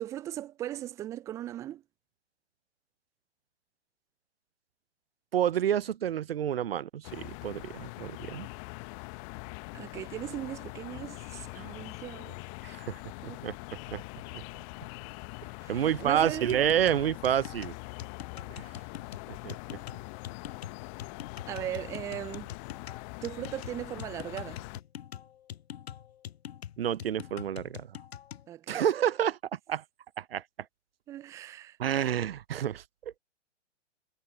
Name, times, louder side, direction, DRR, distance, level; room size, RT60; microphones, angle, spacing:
voice 1, 0.0-1.8 9.7-12.4 13.2-13.4 15.6-16.5 21.5-22.5 23.2-24.6 28.5-28.8 31.1-31.8, right 12 dB, 10° right, 0.5 m, -38 dB
voice 2, 5.3-8.5 11.6-11.7 12.6-13.0 13.2-14.0 15.7-17.7 18.5-18.7 19.3-19.8 26.8-27.9 28.7-29.8 30.2-30.4 31.8-33.2, right 10 dB, 55° right, 0.9 m, -29 dB
sound 1, 7.0-24.8, left 34 dB, 30° left, 1.3 m, -43 dB
sound 2, 16.5-28.5, left 10 dB, 60° left, 0.7 m, -44 dB
figure-of-eight pair, 120°, 36 cm